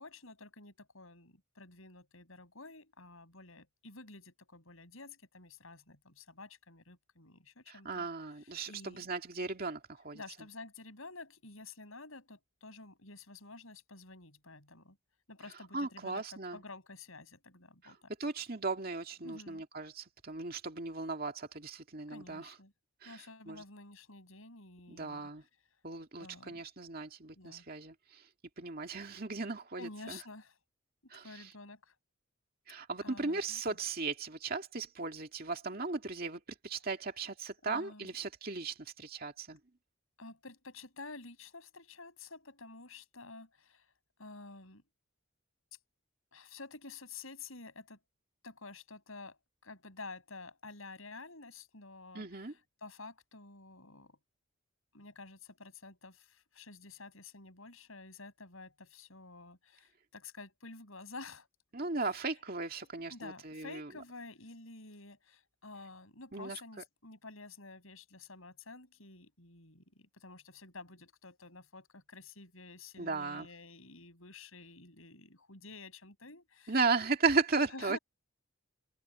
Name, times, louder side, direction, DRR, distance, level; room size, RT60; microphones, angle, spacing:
voice 1, 0.0-8.1 8.4-9.1 10.1-15.0 15.3-18.1 19.2-19.6 22.1-22.7 23.0-25.3 26.2-26.6 27.4-27.7 29.7-30.6 31.2-31.9 33.0-33.8 37.6-38.1 40.2-43.9 44.2-44.8 46.3-48.0 48.4-54.2 54.9-61.5 62.0-62.3 63.1-76.8 77.5-78.0, left 3 dB, 75° left, 6.7 m, -50 dB
voice 2, 7.7-10.2 15.7-16.6 17.8-17.9 18.2-22.5 23.0-23.2 23.5-23.6 24.9-25.4 25.8-28.2 28.6-30.2 31.1-31.5 32.7-39.6 52.1-52.5 61.7-63.9 66.3-66.6 73.0-73.5 76.7-78.0, right 4 dB, 45° right, 2.4 m, -36 dB
head